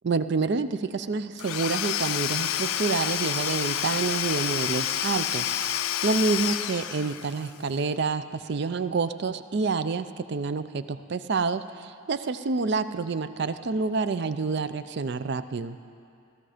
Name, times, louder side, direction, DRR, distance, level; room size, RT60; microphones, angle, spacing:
voice 1, 0.0-5.5 5.7-15.8, right 4 dB, 50° right, 12 dB, 0.4 m, -28 dB
Domestic sounds home sounds / Tools, 1.4-7.5, left 10 dB, 85° left, 0.4 m, -29 dB
15.5 x 13.5 x 5.0 m, 2.4 s
head